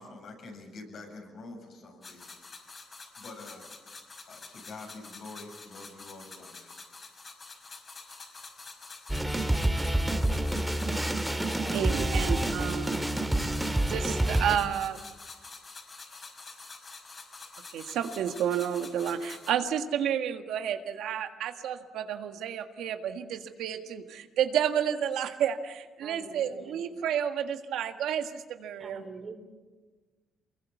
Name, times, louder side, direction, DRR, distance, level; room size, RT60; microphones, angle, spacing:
voice 1, 0.0-2.4 2.7-3.7 4.3-6.7, left 3 dB, 60° left, 7.7 m, -46 dB
sound 1, 2.0-19.5, left 4 dB, 40° left, 5.7 m, -47 dB
sound 2, 9.1-14.6, right 1 dB, 10° right, 1.9 m, -28 dB
voice 2, 11.7-13.0 13.9-15.0 17.7-29.0, right 9 dB, 85° right, 1.7 m, -31 dB
voice 3, 26.0-26.8 28.8-29.3, right 4 dB, 40° right, 3.9 m, -45 dB
24.5 x 21.5 x 8.4 m
cardioid pair, 90°, 0 cm